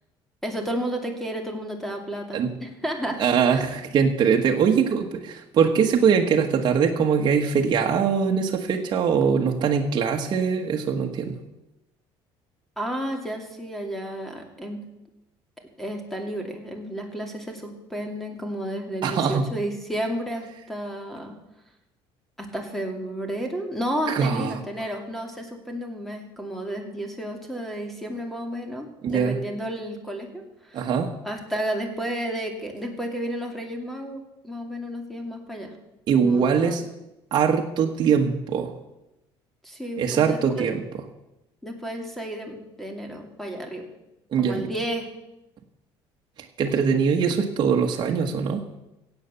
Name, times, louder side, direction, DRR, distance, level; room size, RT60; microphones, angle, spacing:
voice 1, 0.4-3.2 3.5-3.6 12.8-14.8 15.8-21.3 22.4-30.9 31.2-35.7 36.1-36.8 39.6-40.7 41.6-43.9 44.4-45.1, right 1 dB, 5° left, 3 dB, 2.6 m, -32 dB
voice 2, 3.2-11.3 19.0-19.5 24.1-24.6 29.0-29.4 30.7-31.1 36.1-36.8 37.3-38.7 40.0-40.8 44.3-44.7 46.4-48.6, right 6 dB, 45° right, 1 dB, 1.4 m, -22 dB
16.5 x 8.1 x 6.9 m, 0.93 s
cardioid pair, 120°, 10 cm